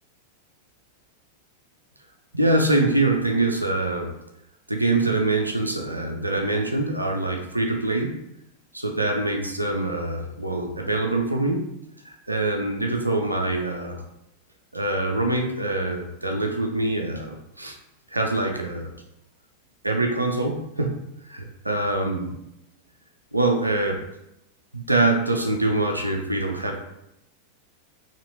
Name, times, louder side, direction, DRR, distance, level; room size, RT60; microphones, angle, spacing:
voice 1, 2.3-4.1 4.7-8.2 8.7-11.7 12.0-14.0 14.7-17.8 18.1-18.9 19.8-21.0 21.3-22.4 23.3-24.0 24.7-26.8, right 2 dB, 85° right, 2 dB, 0.4 m, -24 dB
4.2 x 2.9 x 2.6 m, 0.83 s
figure-of-eight pair, 90°, 0 cm